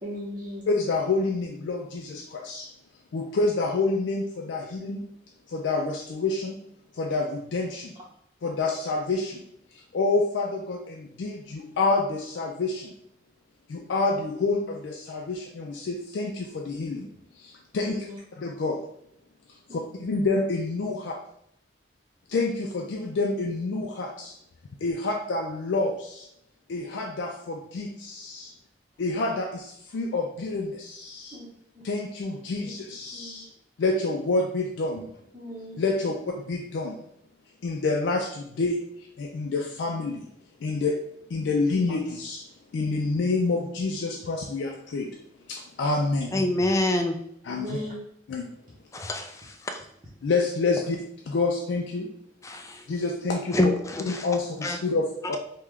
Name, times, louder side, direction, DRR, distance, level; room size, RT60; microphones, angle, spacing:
voice 1, 0.0-0.7 17.9-18.2 19.7-19.8 31.3-31.5 31.7-31.8 32.6-32.7 33.1-33.5 35.3-35.8 47.5-47.9, equal, 30° right, -7 dB, 0.7 m, -37 dB
voice 2, 0.7-2.7 3.1-5.0 5.5-6.6 6.9-7.9 8.4-9.4 9.9-12.9 13.7-17.1 17.4-18.0 18.4-18.8 19.7-21.1 22.3-24.3 24.8-26.3 26.7-28.5 29.0-31.4 31.8-33.5 33.8-35.1 35.8-37.0 37.6-38.8 39.2-40.3 40.6-41.0 41.3-42.4 42.7-45.1 45.5-46.3 47.4-47.8 48.3-48.5 50.2-52.1 52.9-53.7 54.0-55.4, left 3 dB, 90° left, 1 dB, 0.4 m, -28 dB
voice 3, 46.3-47.2 48.9-49.9 52.4-52.9 53.5-54.8, left 1 dB, 15° left, 5 dB, 0.3 m, -27 dB
3.6 x 2.2 x 3.1 m, 0.74 s
head